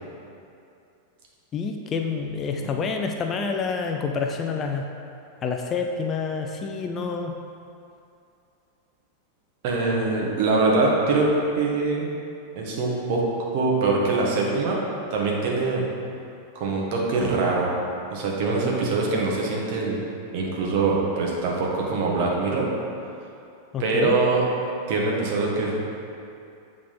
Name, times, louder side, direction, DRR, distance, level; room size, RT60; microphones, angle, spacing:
voice 1, 1.5-4.9 5.4-7.4 23.7-24.2, left 5 dB, 25° left, 3 dB, 0.4 m, -28 dB
voice 2, 9.6-12.1 12.5-13.2 13.5-14.8 15.1-15.8 16.5-17.7 18.1-20.0 20.3-22.7 23.8-24.4 24.9-25.8, right 3 dB, 50° right, -2 dB, 1.2 m, -23 dB
8.4 x 3.7 x 4.1 m, 2.6 s
figure-of-eight pair, 90°, 0 cm